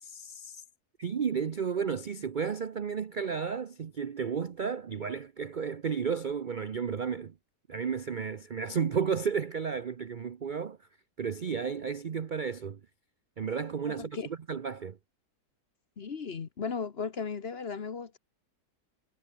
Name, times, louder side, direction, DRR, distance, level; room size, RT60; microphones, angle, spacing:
voice 1, 0.0-0.6 1.0-7.4 7.7-10.9 11.2-12.8 13.4-15.0, right 6 dB, 55° right, 0.5 m, -33 dB
voice 2, 16.0-18.2, left 5 dB, 40° left, 1.2 m, -36 dB
omnidirectional pair, 1.8 m